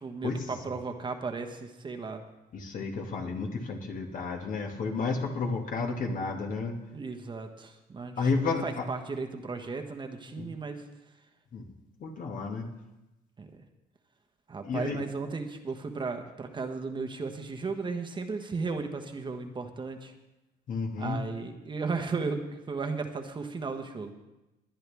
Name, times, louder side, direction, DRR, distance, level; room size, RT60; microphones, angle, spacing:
voice 1, 0.0-2.2 6.9-10.8 13.4-13.5 14.5-20.1 21.0-24.1, right 4 dB, 30° right, 5 dB, 1.2 m, -35 dB
voice 2, 2.5-6.8 8.2-8.8 10.4-10.5 11.5-11.6 12.0-12.7 14.7-15.0 20.7-21.2, left 4 dB, 50° left, 2 dB, 2.0 m, -31 dB
20.5 x 10.0 x 3.5 m, 0.98 s
cardioid pair, 110°, 17 cm